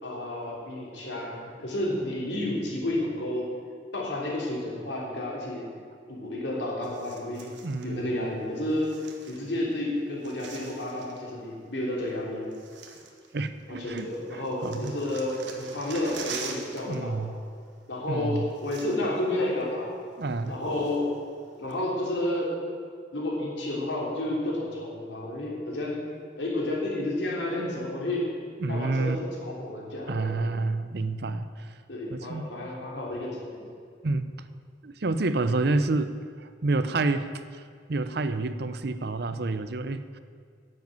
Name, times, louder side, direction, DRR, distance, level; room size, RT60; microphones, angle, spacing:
voice 1, 0.0-3.5 3.9-5.7 6.1-7.5 7.8-12.5 13.7-17.3 17.9-20.0 20.5-21.1 21.6-22.6 23.1-26.0 26.4-28.3 28.7-30.3 31.9-33.7, left 1 dB, 75° left, -3 dB, 3.3 m, -31 dB
sound 1, 6.8-7.9 8.7-9.7 10.0-11.3 12.1-12.2 12.5-13.7 14.0-17.0 17.2-17.5 18.2-18.3 18.5-19.3 19.6-19.7 20.2-21.2 21.7-21.8, right 5 dB, 75° right, 1.5 m, -44 dB
voice 2, 7.6-8.4 13.3-15.0 16.9-17.3 18.1-18.5 20.2-20.6 28.6-29.2 30.1-31.8 32.1-32.7 34.0-34.3 34.8-36.1 36.4-40.2, right 3 dB, 60° right, 11 dB, 0.6 m, -29 dB
10.5 x 7.8 x 9.3 m, 2.1 s
head